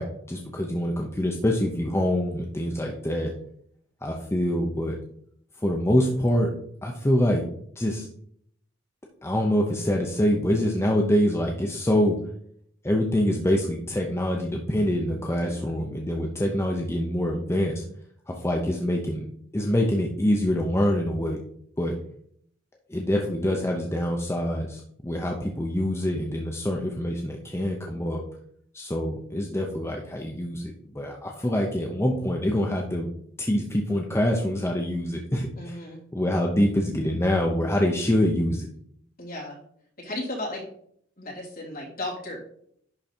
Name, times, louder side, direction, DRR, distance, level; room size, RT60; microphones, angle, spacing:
voice 1, 0.0-3.3 4.0-5.0 5.6-6.5 6.8-7.4 7.8-8.1 9.2-12.2 12.8-17.8 18.3-19.2 19.5-21.4 21.8-22.0 22.9-28.2 28.7-33.1 33.4-35.8 36.1-38.7, left 1 dB, 15° left, 0 dB, 0.7 m, -25 dB
voice 2, 15.3-15.6 35.6-36.0 39.2-39.6 40.0-40.6 41.2-42.4, left 1 dB, 45° left, -4 dB, 3.3 m, -35 dB
10.5 x 3.8 x 4.4 m, 0.67 s
head